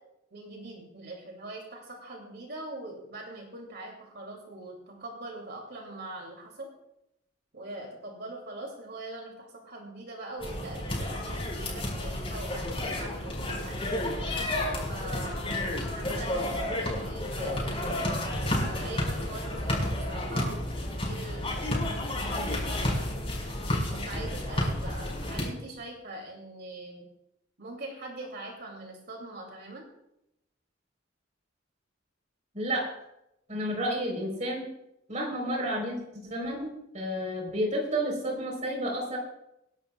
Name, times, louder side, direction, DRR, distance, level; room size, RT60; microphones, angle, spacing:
voice 1, 0.3-6.7 7.5-13.8 14.9-15.6 15.9-18.1 18.6-20.6 20.9-23.1 23.9-27.1 27.6-29.8, right 2 dB, 55° right, 0 dB, 2.7 m, -42 dB
sound 1, 10.4-25.5, left 1 dB, 30° left, 4.9 m, -31 dB
voice 2, 32.5-32.9 33.5-34.7 35.1-39.2, equal, 40° right, 0 dB, 3.9 m, -31 dB
26.0 x 11.5 x 2.3 m, 0.85 s
head